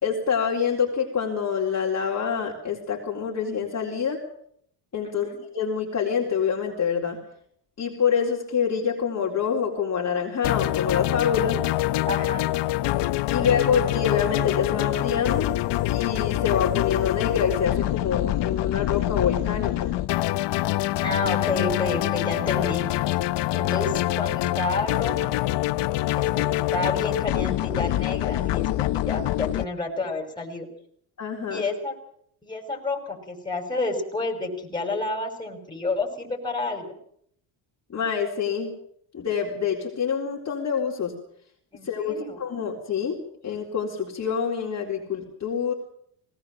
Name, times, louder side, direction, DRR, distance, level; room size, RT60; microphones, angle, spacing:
voice 1, 0.0-4.2 4.9-5.3 5.5-7.2 7.8-11.6 13.3-19.9 31.2-31.7 37.9-38.7 39.1-41.1 41.8-45.7, left 7 dB, 35° left, -2 dB, 4.0 m, -26 dB
voice 2, 5.0-5.4 12.0-12.5 21.0-22.8 23.5-25.3 26.2-28.7 28.9-30.7 31.5-31.9 32.4-36.8 41.7-42.4, left 2 dB, 10° left, 2 dB, 5.7 m, -30 dB
sound 1, 10.4-29.6, left 16 dB, 60° left, 0.9 m, -25 dB
20.0 x 18.5 x 7.6 m, 0.67 s
cardioid pair, 105°, 47 cm